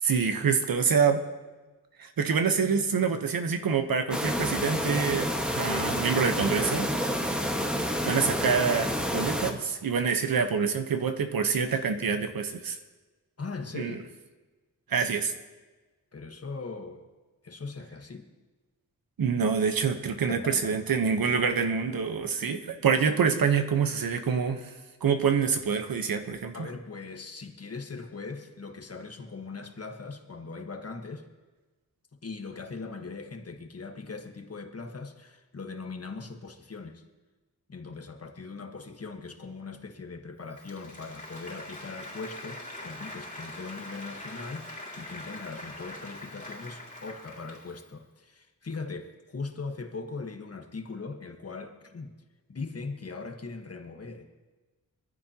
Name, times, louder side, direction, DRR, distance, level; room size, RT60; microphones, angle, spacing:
voice 1, 0.0-1.2 2.0-6.9 8.0-12.8 13.7-14.0 14.9-15.3 19.2-24.7 25.0-26.7, right 6 dB, 85° right, 7 dB, 1.1 m, -26 dB
sound 1, 4.1-9.5, equal, 5° right, 1.5 m, -29 dB
voice 2, 13.4-14.0 16.1-17.1 17.4-18.3 20.3-20.8 26.5-31.3 32.2-37.0 37.7-52.1 52.5-54.4, left 4 dB, 45° left, 5 dB, 1.5 m, -40 dB
Applause, 40.5-47.9, left 1 dB, 20° left, 3.5 m, -43 dB
23.0 x 14.5 x 2.9 m, 1.2 s
wide cardioid pair, 85°, 34 cm